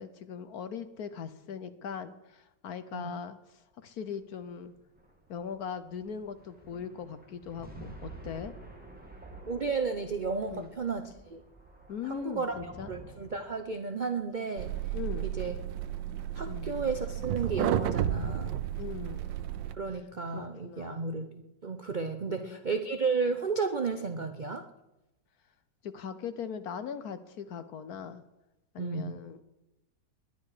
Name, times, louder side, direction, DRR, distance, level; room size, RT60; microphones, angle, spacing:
voice 1, 0.0-4.7 5.3-8.5 10.5-10.7 11.9-12.9 14.9-15.3 16.5-16.8 18.8-19.3 19.9-20.0 20.3-21.1 22.3-22.6 25.8-28.2 28.7-29.4, left 7 dB, 60° left, 11 dB, 1.1 m, -40 dB
sound 1, 4.0-17.6, right 2 dB, 5° right, 2.0 m, -51 dB
voice 2, 9.5-11.4 12.0-12.6 12.9-14.7 15.2-15.5 16.3-18.5 19.7-24.6 28.8-29.2, right 4 dB, 60° right, 7 dB, 0.4 m, -33 dB
sound 2, 14.6-19.8, right 11 dB, 80° right, 1.4 m, -32 dB
20.0 x 10.5 x 4.9 m, 0.94 s
omnidirectional pair, 2.0 m